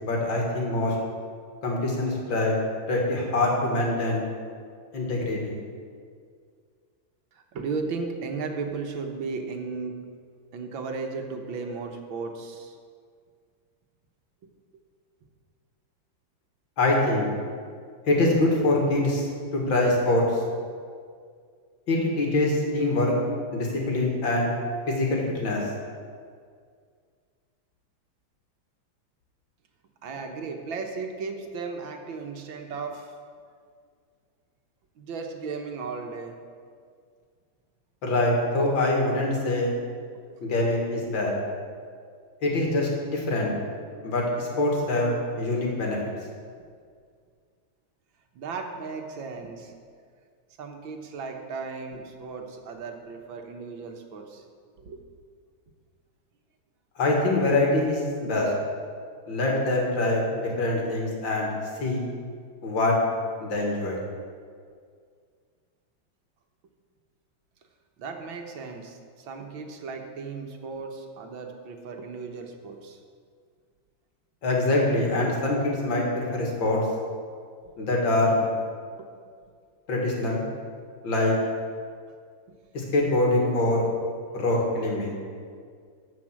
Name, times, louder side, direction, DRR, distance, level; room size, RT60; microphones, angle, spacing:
voice 1, 0.0-1.0 1.6-2.6 2.9-4.2 4.9-5.5 16.8-17.3 18.1-19.3 19.5-20.2 21.9-23.1 23.5-24.6 24.9-25.6 38.0-39.7 40.4-41.4 42.4-43.5 44.0-46.0 57.0-58.5 59.3-61.5 61.8-62.1 62.6-63.0 63.4-64.0 74.4-76.8 77.8-78.4 79.9-80.4 81.0-81.3 82.7-83.9 84.3-85.2, left 2 dB, 75° left, -1 dB, 2.8 m, -24 dB
voice 2, 7.3-10.0 10.5-12.8 14.7-14.8 30.0-33.1 35.0-36.3 40.1-40.2 48.4-49.7 50.6-54.4 54.8-55.0 68.0-73.0 79.0-79.1, right 4 dB, 85° right, 4 dB, 1.9 m, -35 dB
13.5 x 5.5 x 7.5 m, 2.1 s
omnidirectional pair, 2.1 m